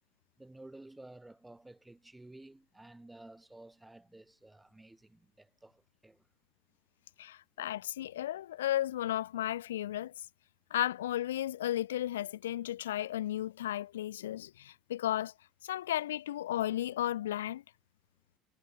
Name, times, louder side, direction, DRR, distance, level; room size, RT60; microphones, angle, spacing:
voice 1, 0.4-6.3, right 2 dB, 10° right, 4.4 m, -53 dB
voice 2, 7.2-10.1 10.7-15.3 15.6-17.6, left 12 dB, 70° left, 0.7 m, -34 dB
figure-of-eight pair, 65°, 0 cm